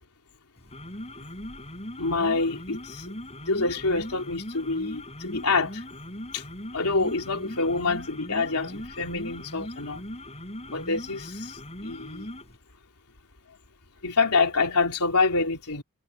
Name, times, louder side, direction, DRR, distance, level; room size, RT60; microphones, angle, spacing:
sound 1, 0.6-12.6, left 1 dB, 30° left, 6.8 m, -40 dB
voice 1, 2.0-3.1 3.4-5.8 6.3-6.5 6.7-10.0 10.7-12.3 14.0-15.8, left 3 dB, 85° left, 3.1 m, -26 dB
head